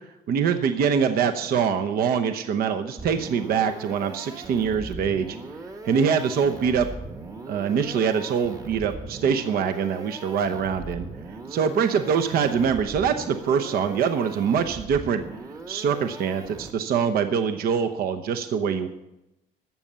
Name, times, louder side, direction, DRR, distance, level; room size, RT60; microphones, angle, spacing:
voice 1, 0.3-5.4 5.8-6.9 7.5-15.2 15.7-18.9, right 7 dB, 60° right, 7 dB, 0.8 m, -24 dB
sound 1, 3.0-17.0, right 2 dB, 20° right, 1.1 m, -40 dB
12.5 x 7.5 x 6.8 m, 0.92 s
cardioid pair, 110°, 17 cm